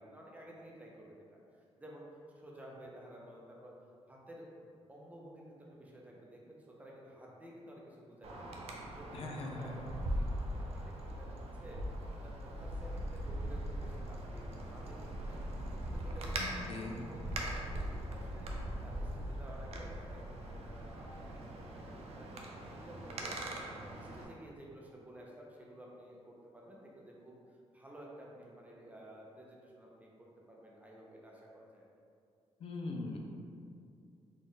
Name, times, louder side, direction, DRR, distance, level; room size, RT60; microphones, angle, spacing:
voice 1, 0.0-1.4 1.8-2.1 2.3-3.7 4.1-8.6 8.9-23.4 23.7-31.9, right 1 dB, 15° right, -3 dB, 0.7 m, -53 dB
Wind, 8.2-24.3, right 1 dB, 70° right, 0.5 m, -41 dB
voice 2, 9.1-9.9 16.4-17.1 32.6-33.2, left 2 dB, 60° left, 1 dB, 0.5 m, -41 dB
4.1 x 2.4 x 3.7 m, 2.3 s
cardioid pair, 115°, 11 cm